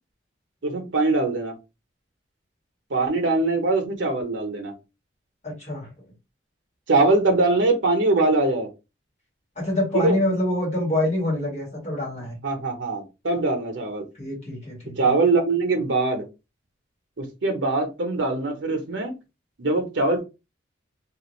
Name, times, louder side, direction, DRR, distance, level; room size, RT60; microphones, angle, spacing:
voice 1, 0.6-1.5 2.9-4.7 6.9-8.7 9.9-10.2 12.4-14.0 15.0-16.3 17.2-19.1 19.6-20.2, right 2 dB, 80° right, 0.8 m, -22 dB
voice 2, 5.4-5.9 9.6-12.4 14.2-15.2, left 1 dB, 35° left, 1.4 m, -26 dB
2.5 x 2.5 x 3.0 m
head